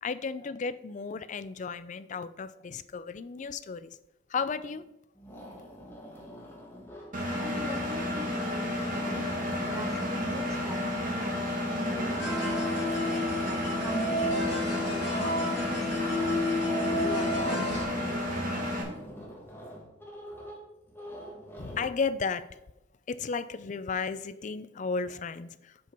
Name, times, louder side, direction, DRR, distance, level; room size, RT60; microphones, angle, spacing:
voice 1, 0.0-3.9 4.3-4.8 21.6-22.6 23.1-25.9, left 5 dB, 40° left, 14 dB, 0.4 m, -34 dB
sound 1, 4.4-4.9 5.1-8.2 8.6-10.8 11.6-21.9, equal, 10° left, 1.5 m, -45 dB
Engine, 7.1-18.8, left 1 dB, 45° right, 1.9 m, -31 dB
voice 2, 7.3-9.3 9.6-12.7 13.4-16.4 17.0-17.9, equal, 15° right, 4 dB, 1.1 m, -41 dB
sound 2, 12.2-17.8, left 1 dB, 75° left, 2.0 m, -31 dB
7.6 x 5.3 x 4.4 m, 0.88 s
head